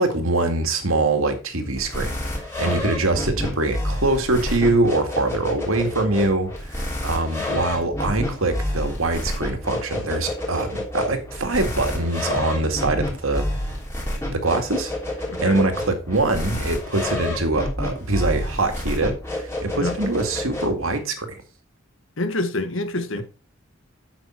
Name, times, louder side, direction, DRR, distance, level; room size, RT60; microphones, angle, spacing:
voice 1, 0.0-13.5 14.3-14.9 15.4-21.4, right 2 dB, 80° right, 2.0 m, -23 dB
sound 1, 1.8-21.0, left 1 dB, 10° left, 3.2 m, -29 dB
voice 2, 15.3-15.6 19.7-20.0 22.2-23.2, left 2 dB, 65° left, 1.4 m, -26 dB
9.1 x 7.3 x 4.5 m
head